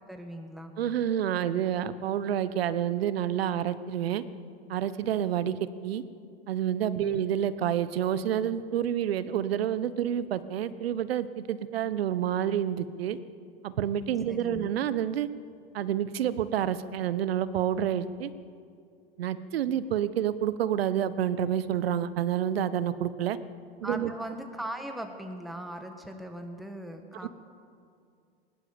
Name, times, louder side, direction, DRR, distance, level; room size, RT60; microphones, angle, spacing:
voice 1, 0.1-0.7 7.0-7.2 14.3-14.7 23.8-27.3, right 1 dB, ahead, 5 dB, 1.4 m, -39 dB
voice 2, 0.8-4.2 4.7-6.0 6.5-13.2 13.6-15.3 15.7-18.3 19.2-23.4 23.8-24.1 27.2-27.3, right 10 dB, 70° right, 15 dB, 1.1 m, -28 dB
20.0 x 18.5 x 7.2 m, 2.4 s
hypercardioid pair, 105°, 31 cm